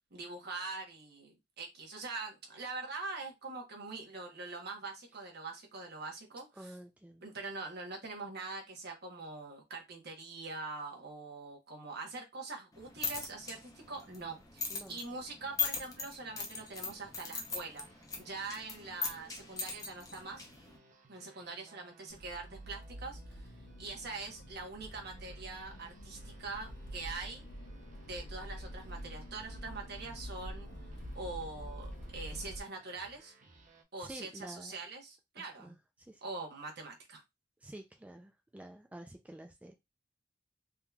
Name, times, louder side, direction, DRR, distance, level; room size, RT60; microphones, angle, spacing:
voice 1, 0.1-6.8 7.2-17.9 18.2-20.5 21.1-23.5 23.8-27.4 28.1-30.7 31.1-33.3 33.9-35.8 36.2-37.2, right 3 dB, 60° right, 2 dB, 1.1 m, -43 dB
voice 2, 6.6-7.2 14.7-15.0 34.0-34.7 35.4-36.2 37.6-39.7, right 1 dB, 10° right, 4 dB, 0.3 m, -50 dB
sound 1, 12.7-20.8, left 4 dB, 20° left, 0.7 m, -40 dB
sound 2, 16.3-33.8, right 3 dB, 45° right, 0.7 m, -62 dB
Accelerating revving vroom, 22.1-32.6, equal, 65° left, 0.8 m, -46 dB
3.5 x 2.9 x 2.3 m, 0.21 s
head